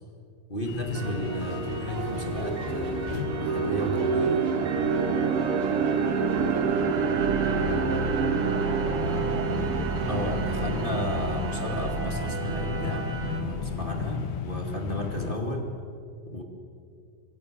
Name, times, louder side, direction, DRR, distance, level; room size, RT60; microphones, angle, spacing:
voice 1, 0.5-4.5 10.1-13.1 13.4-15.7 16.3-16.4, left 1 dB, 20° left, 2 dB, 1.9 m, -33 dB
sound 1, 0.7-15.4, left 7 dB, 85° left, 3.0 m, -36 dB
sound 2, 0.9-13.4, right 3 dB, 40° right, 3.4 m, -33 dB
sound 3, 1.3-1.4 1.9-13.9, right 6 dB, 85° right, 1.2 m, -29 dB
voice 2, 5.6-9.7 14.1-14.2, right 1 dB, 65° right, -3 dB, 9.0 m, -43 dB
25.5 x 23.5 x 6.8 m, 2.4 s
omnidirectional pair, 4.2 m